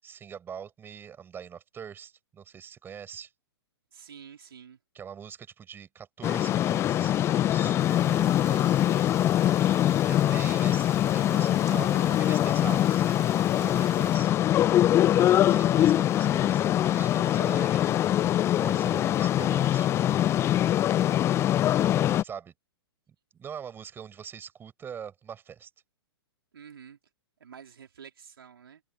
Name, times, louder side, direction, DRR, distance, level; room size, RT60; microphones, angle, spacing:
voice 1, 0.0-3.3 4.9-9.0 10.1-14.3 14.6-18.0 18.5-20.3 22.2-22.5 23.3-25.7, right 8 dB, 15° right, 7.8 m, -43 dB
voice 2, 3.9-4.8 26.5-27.0 27.4-28.8, right 7 dB, 60° right, 4.0 m, -48 dB
sound 1, 6.2-22.2, left 12 dB, 20° left, 0.9 m, -23 dB
Water, 7.8-14.2, right 18 dB, 40° right, 4.2 m, -49 dB
open air
figure-of-eight pair, 115°, 14 cm